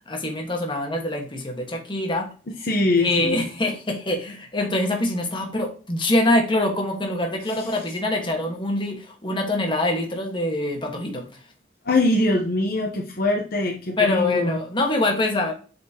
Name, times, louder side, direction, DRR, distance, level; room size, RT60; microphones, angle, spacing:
voice 1, 0.1-2.3 3.0-11.2 14.0-15.5, left 1 dB, 30° left, 2 dB, 1.4 m, -24 dB
voice 2, 2.5-3.5 7.5-7.7 11.8-14.6, left 2 dB, 55° left, 0 dB, 0.9 m, -23 dB
7.7 x 4.2 x 2.9 m, 0.37 s
head